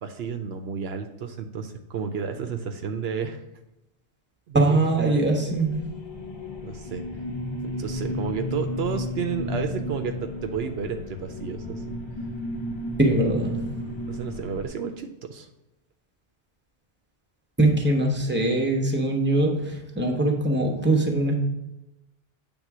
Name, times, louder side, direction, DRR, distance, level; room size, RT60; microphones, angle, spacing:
voice 1, 0.0-3.4 4.5-5.2 6.6-7.2 7.8-12.0 14.1-15.5, right 6 dB, 75° right, 6 dB, 0.9 m, -32 dB
voice 2, 4.5-5.9 13.0-13.8 17.6-21.3, right 2 dB, 10° right, 1 dB, 1.0 m, -22 dB
sound 1, 5.5-14.7, left 1 dB, 30° left, 0.6 m, -33 dB
8.1 x 3.6 x 6.0 m, 0.94 s
omnidirectional pair, 1.1 m